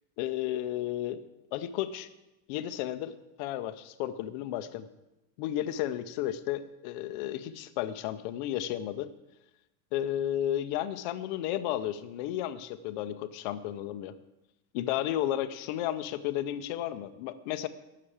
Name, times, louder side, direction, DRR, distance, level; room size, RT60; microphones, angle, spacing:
voice 1, 0.2-1.2 1.5-2.1 2.5-4.9 5.4-9.1 9.9-14.1 14.7-17.7, left 12 dB, 35° left, 11 dB, 0.4 m, -33 dB
12.5 x 6.6 x 8.4 m, 0.96 s
supercardioid pair, 175°, 48 cm